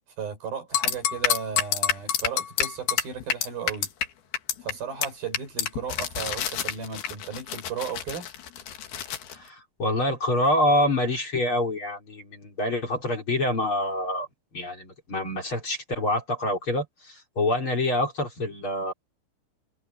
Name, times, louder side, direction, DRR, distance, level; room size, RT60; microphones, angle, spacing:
voice 1, 0.2-3.9 4.6-8.3, right 6 dB, 75° right, 7.8 m, -35 dB
sound 1, 0.7-4.1 4.3-4.7 5.0-5.1 5.3-9.3, left 9 dB, 90° left, 3.9 m, -27 dB
voice 2, 9.3-14.3 14.5-18.9, left 1 dB, 35° left, 4.8 m, -26 dB
omnidirectional pair, 4.3 m